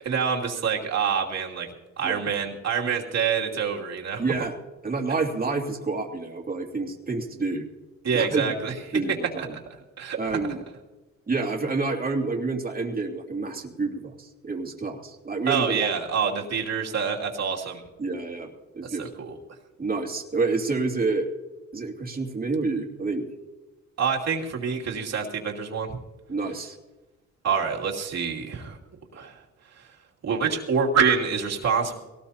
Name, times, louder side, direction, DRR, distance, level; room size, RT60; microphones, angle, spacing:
voice 1, 0.0-1.7 2.0-4.2 8.0-9.0 9.4-9.6 10.0-10.4 15.5-17.8 18.8-19.4 24.0-26.0 27.4-28.8 29.1-29.3 29.8-29.9 30.2-32.0, right 6 dB, 60° right, -1 dB, 2.8 m, -26 dB
voice 2, 4.2-4.5 4.8-7.7 8.1-8.5 8.9-9.5 10.2-10.6 11.3-15.9 18.0-19.1 19.8-21.3 21.7-23.3 26.3-26.8, right 3 dB, 30° right, 1 dB, 2.7 m, -28 dB
22.0 x 18.0 x 2.9 m, 1.2 s
cardioid pair, 90°, 30 cm